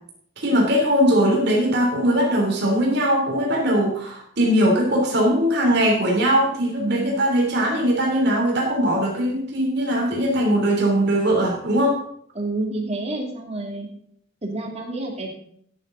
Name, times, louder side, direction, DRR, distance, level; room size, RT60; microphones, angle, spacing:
voice 1, 0.4-12.0, equal, 60° right, -1 dB, 3.3 m, -20 dB
voice 2, 6.8-7.2 12.3-13.9 14.4-15.3, right 2 dB, 35° right, 1 dB, 2.6 m, -28 dB
14.5 x 10.0 x 3.9 m, 0.65 s
head